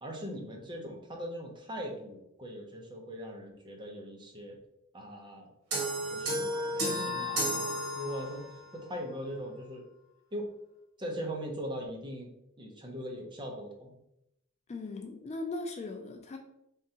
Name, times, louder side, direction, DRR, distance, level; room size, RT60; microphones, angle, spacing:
voice 1, 0.0-4.6 4.9-5.5 6.1-8.4 8.7-9.8 10.3-10.5 11.0-12.3 12.6-13.9, equal, 20° right, 1 dB, 0.7 m, -40 dB
sound 1, 5.7-8.6, equal, 75° right, 1.4 m, -32 dB
voice 2, 14.7-16.4, left 2 dB, 30° left, 4 dB, 0.3 m, -38 dB
3.8 x 3.5 x 2.8 m, 0.82 s
head